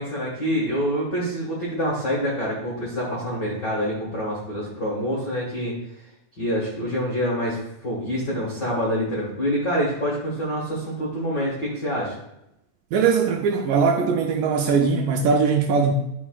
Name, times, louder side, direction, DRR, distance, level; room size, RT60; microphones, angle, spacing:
voice 1, 0.0-5.7 6.4-12.2, equal, 50° left, -5 dB, 1.3 m, -26 dB
voice 2, 12.9-15.9, right 5 dB, 80° right, 3 dB, 2.1 m, -20 dB
11.0 x 6.0 x 2.3 m, 0.85 s
omnidirectional pair, 4.2 m